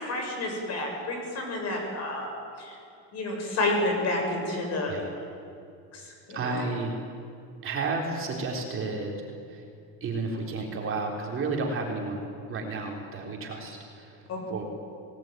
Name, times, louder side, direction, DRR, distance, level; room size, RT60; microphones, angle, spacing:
voice 1, 0.0-2.3 2.6-2.8 3.1-4.9 5.9-6.6 14.3-14.4, left 2 dB, 40° left, 2 dB, 7.2 m, -30 dB
voice 2, 4.9-5.3 6.3-7.0 7.6-9.1 9.5-9.6 10.0-14.6, right 3 dB, 35° right, 0 dB, 3.8 m, -32 dB
29.5 x 19.0 x 9.3 m, 2.5 s
cardioid pair, 160°, 38 cm